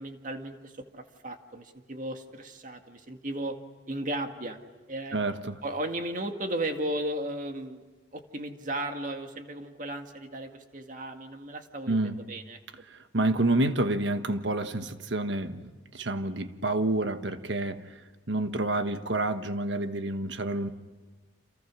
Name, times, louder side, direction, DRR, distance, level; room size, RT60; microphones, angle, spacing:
voice 1, 0.0-3.6 3.9-4.6 4.9-5.2 5.6-7.8 8.1-12.6, right 1 dB, 45° right, 2.0 m, -35 dB
voice 2, 5.1-5.6 11.9-12.2 12.9-17.8 18.3-20.7, right 2 dB, 80° right, 1.4 m, -28 dB
29.5 x 27.5 x 6.3 m
head